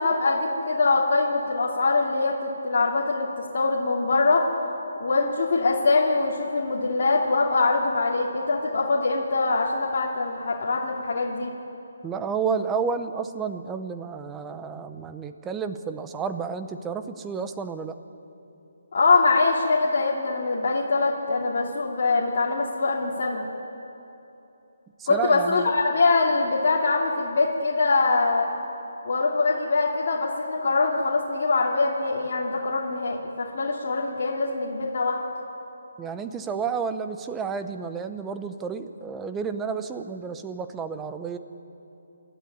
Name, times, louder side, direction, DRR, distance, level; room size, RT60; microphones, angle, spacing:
voice 1, 0.0-4.5 5.0-11.5 18.9-23.4 25.1-28.5 29.0-35.2, left 3 dB, 50° left, -4 dB, 2.6 m, -23 dB
voice 2, 12.0-18.0 25.0-25.7 36.0-41.4, right 5 dB, 10° right, 9 dB, 0.8 m, -31 dB
27.5 x 12.5 x 9.5 m, 2.9 s
hypercardioid pair, 165°, 0 cm